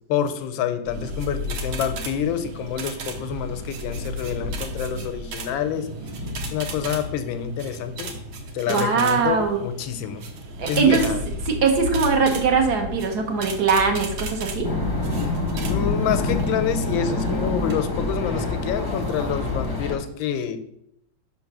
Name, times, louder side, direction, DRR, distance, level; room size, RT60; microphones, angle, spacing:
voice 1, 0.1-5.9 6.4-8.2 8.5-10.2 10.7-11.3 15.7-20.6, left 8 dB, 90° left, 10 dB, 1.4 m, -27 dB
sound 1, 0.9-19.9, left 1 dB, 85° right, 1.8 m, -33 dB
voice 2, 8.7-9.6 10.6-11.1 11.5-14.7, right 5 dB, 60° right, 3 dB, 1.4 m, -21 dB
sound 2, 14.6-20.0, left 2 dB, 25° left, 0.5 m, -26 dB
5.8 x 3.9 x 5.9 m, 0.77 s
omnidirectional pair, 2.1 m